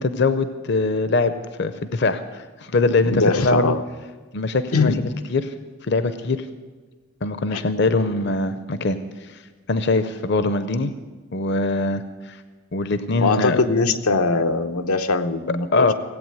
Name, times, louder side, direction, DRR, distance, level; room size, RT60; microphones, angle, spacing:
voice 1, 0.0-1.3 1.6-3.8 4.3-5.5 5.8-6.5 7.2-9.4 9.7-10.9 11.3-12.4 12.7-13.6 15.7-15.9, left 3 dB, 50° left, 11 dB, 0.6 m, -22 dB
voice 2, 3.0-3.8 4.7-5.0 7.5-7.6 13.2-15.9, left 3 dB, 90° left, 7 dB, 0.9 m, -21 dB
17.0 x 8.5 x 9.0 m, 1.4 s
head